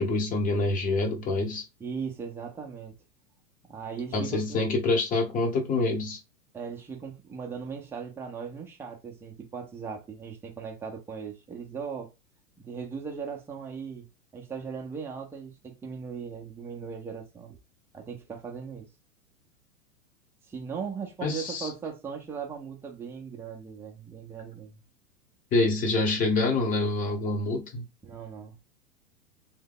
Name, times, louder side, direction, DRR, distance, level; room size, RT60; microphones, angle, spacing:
voice 1, 0.0-1.6 4.1-6.2 21.2-21.7 25.5-27.8, left 2 dB, 20° left, 1.0 m, -26 dB
voice 2, 1.8-2.9 3.7-4.6 6.5-12.1 12.6-14.1 14.3-17.6 17.9-18.9 20.5-24.8 28.0-28.5, right 6 dB, 5° right, 0.6 m, -38 dB
3.5 x 2.2 x 3.6 m
figure-of-eight pair, 100°, 43 cm